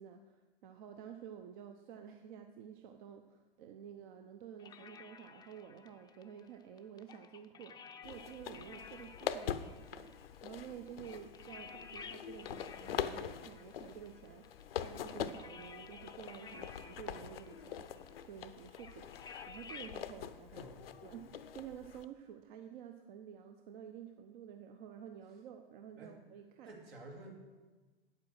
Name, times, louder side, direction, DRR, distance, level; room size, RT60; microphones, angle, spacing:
voice 1, 0.0-10.1 10.4-19.1 19.5-26.7, right 8 dB, 55° right, 6 dB, 0.8 m, -51 dB
sound 1, 4.6-20.0, left 6 dB, 15° left, 0.5 m, -54 dB
sound 2, 8.0-22.0, left 9 dB, 70° left, 0.6 m, -44 dB
voice 2, 20.5-20.8 26.0-26.1 26.6-27.3, right 2 dB, 75° right, 1 dB, 2.5 m, -51 dB
8.8 x 8.3 x 6.4 m, 1.3 s
figure-of-eight pair, 95°, 30 cm